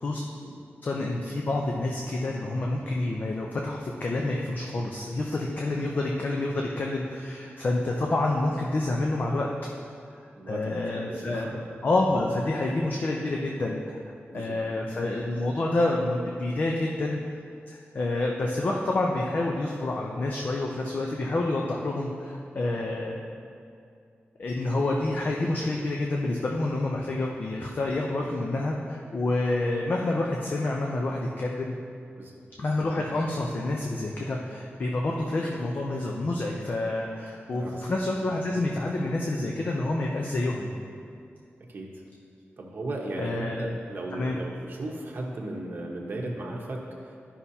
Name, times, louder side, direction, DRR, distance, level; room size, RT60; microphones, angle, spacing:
voice 1, 0.8-9.5 10.5-11.5 11.8-14.0 14.3-17.2 17.7-23.2 24.4-31.8 32.6-40.7 43.2-43.8 44.1-44.4, left 2 dB, 45° left, -1 dB, 0.6 m, -28 dB
voice 2, 10.4-11.6 14.3-14.6 32.2-32.3 37.5-37.7 41.7-41.9 42.6-47.1, right 1 dB, 50° right, -2 dB, 1.1 m, -36 dB
13.0 x 5.6 x 2.8 m, 2.4 s
wide cardioid pair, 170°, 4 cm